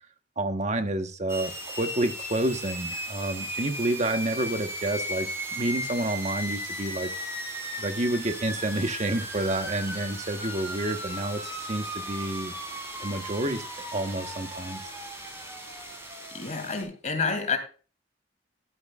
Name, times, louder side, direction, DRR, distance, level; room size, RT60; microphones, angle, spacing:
voice 1, 0.4-7.1 7.8-12.6 13.0-13.7 13.9-14.9, right 1 dB, 40° right, 7 dB, 1.2 m, -29 dB
sound 1, 1.3-16.8, right 1 dB, 15° right, 3.9 m, -36 dB
voice 2, 16.3-17.6, left 5 dB, 40° left, 5 dB, 2.7 m, -28 dB
12.5 x 12.0 x 2.4 m, 0.35 s
head